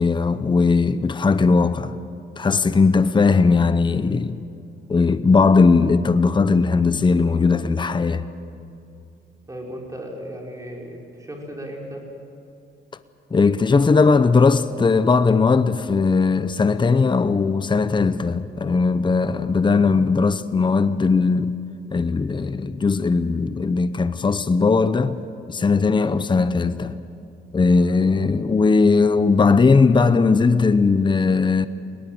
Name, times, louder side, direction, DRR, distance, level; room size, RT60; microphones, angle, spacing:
voice 1, 0.0-1.9 2.4-4.4 4.9-8.2 13.3-21.6 21.9-25.1 25.5-27.0 27.5-31.7, left 4 dB, 25° left, 0.8 m, -18 dB
voice 2, 9.5-12.0 28.1-28.4, equal, 15° right, 5.4 m, -36 dB
21.5 x 18.5 x 8.0 m
cardioid pair, 90°, 20 cm